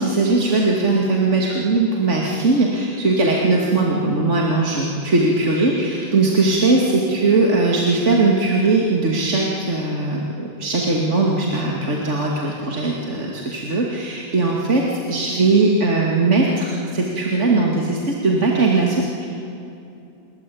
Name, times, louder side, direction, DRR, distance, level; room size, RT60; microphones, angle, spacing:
voice 1, 0.0-19.3, right 3 dB, 35° right, -2 dB, 2.7 m, -19 dB
28.0 x 22.0 x 8.7 m, 2.7 s
omnidirectional pair, 2.1 m